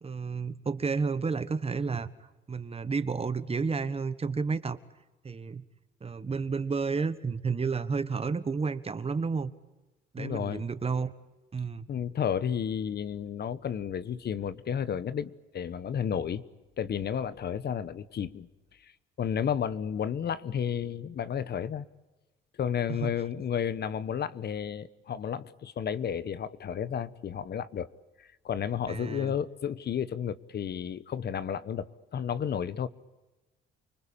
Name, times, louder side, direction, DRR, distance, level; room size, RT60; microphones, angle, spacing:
voice 1, 0.0-2.1 2.5-4.8 5.2-5.6 6.0-9.5 10.1-11.1 11.5-11.9 22.9-23.1 28.9-29.3, right 4 dB, 30° right, 1.4 m, -31 dB
voice 2, 10.2-10.6 11.9-16.4 16.8-18.5 18.8-18.9 19.2-21.9 22.6-27.9 28.2-32.9, left 8 dB, 55° left, 1.2 m, -32 dB
29.5 x 20.5 x 8.8 m
cardioid pair, 90°, 20 cm